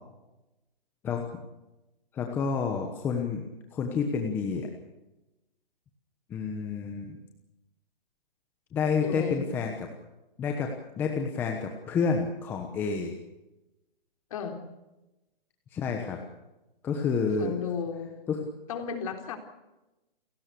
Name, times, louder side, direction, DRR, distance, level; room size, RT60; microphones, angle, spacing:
voice 1, 2.1-3.4 3.7-4.7 6.3-7.2 8.7-9.9 10.4-13.1 15.7-16.2 16.8-17.5 18.3-18.4, left 5 dB, 5° left, 2 dB, 1.1 m, -29 dB
voice 2, 9.0-9.5 14.3-14.6 17.4-18.2 18.7-19.4, left 7 dB, 35° left, 5 dB, 3.8 m, -34 dB
30.0 x 16.5 x 6.8 m, 1.0 s
hypercardioid pair, 170°, 29 cm